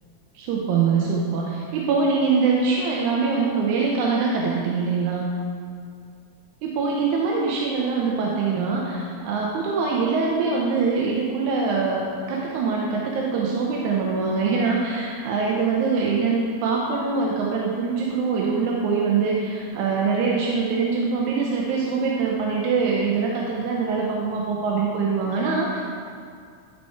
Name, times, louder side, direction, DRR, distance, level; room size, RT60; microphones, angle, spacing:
voice 1, 0.4-5.3 6.6-25.8, right 4 dB, 90° right, -2 dB, 2.2 m, -23 dB
12.0 x 4.3 x 4.5 m, 2.3 s
omnidirectional pair, 3.3 m